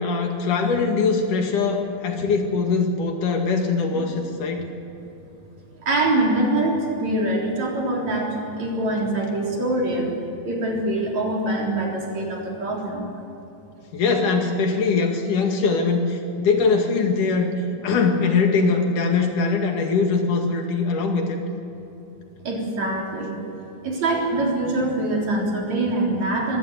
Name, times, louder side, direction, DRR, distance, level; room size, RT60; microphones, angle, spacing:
voice 1, 0.0-4.6 13.9-17.5 17.8-21.4, left 4 dB, 80° left, 3 dB, 3.7 m, -22 dB
voice 2, 5.8-10.1 10.4-13.1 22.4-23.4 23.8-26.6, right 2 dB, 60° right, -1 dB, 4.9 m, -24 dB
25.0 x 15.0 x 8.2 m, 2.9 s
omnidirectional pair, 3.6 m